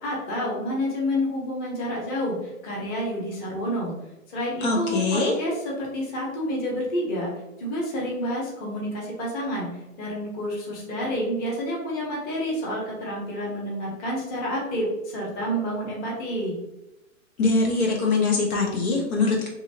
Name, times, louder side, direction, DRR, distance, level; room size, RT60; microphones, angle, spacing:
voice 1, 0.0-2.4 2.6-3.9 4.3-5.5 5.8-7.3 7.6-16.6, equal, 20° left, -4 dB, 0.8 m, -29 dB
voice 2, 4.6-5.3 17.4-19.5, left 3 dB, 90° left, -1 dB, 1.1 m, -23 dB
2.8 x 2.7 x 2.7 m, 0.94 s
hypercardioid pair, 140°, 42 cm